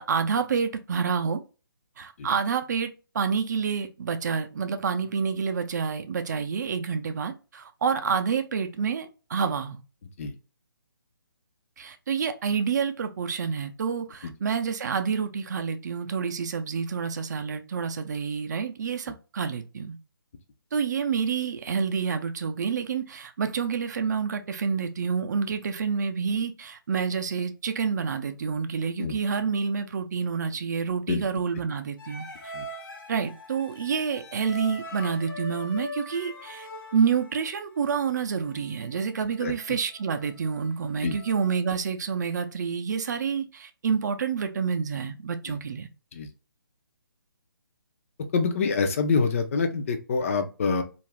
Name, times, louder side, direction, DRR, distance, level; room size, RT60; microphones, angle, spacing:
voice 1, 0.0-1.4 2.0-9.8 11.8-20.0 20.7-32.5 33.1-45.9, right 6 dB, 50° right, 0.4 m, -28 dB
sound 1, 32.0-41.6, left 1 dB, 65° left, 1.1 m, -42 dB
voice 2, 48.3-50.8, left 4 dB, 40° left, 0.4 m, -26 dB
2.4 x 2.0 x 3.3 m
figure-of-eight pair, 150°, 12 cm